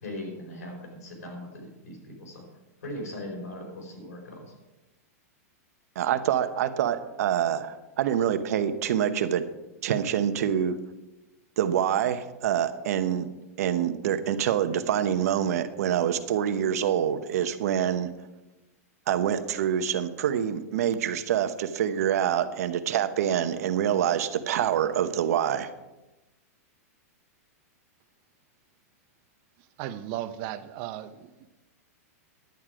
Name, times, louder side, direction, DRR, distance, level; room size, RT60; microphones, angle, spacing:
voice 1, 0.0-2.4 2.8-4.5, left 1 dB, 85° left, 4.7 m, -39 dB
voice 2, 6.0-9.5 9.8-10.8 11.6-13.3 13.6-18.1 19.1-25.7, right 9 dB, 70° right, 1.0 m, -26 dB
voice 3, 29.8-31.5, right 12 dB, 40° right, 0.8 m, -36 dB
10.5 x 9.5 x 4.9 m
supercardioid pair, 150°, 9 cm